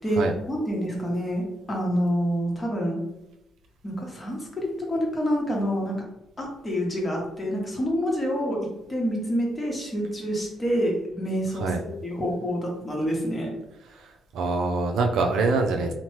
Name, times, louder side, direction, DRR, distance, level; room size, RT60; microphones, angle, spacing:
voice 1, 0.5-3.0 3.8-6.0 6.4-8.6 8.9-11.7 12.0-13.5, equal, 25° left, -1 dB, 0.9 m, -27 dB
voice 2, 13.9-15.9, right 3 dB, 80° right, 3 dB, 0.4 m, -25 dB
2.9 x 2.1 x 3.1 m, 0.90 s
cardioid pair, 90°, 0 cm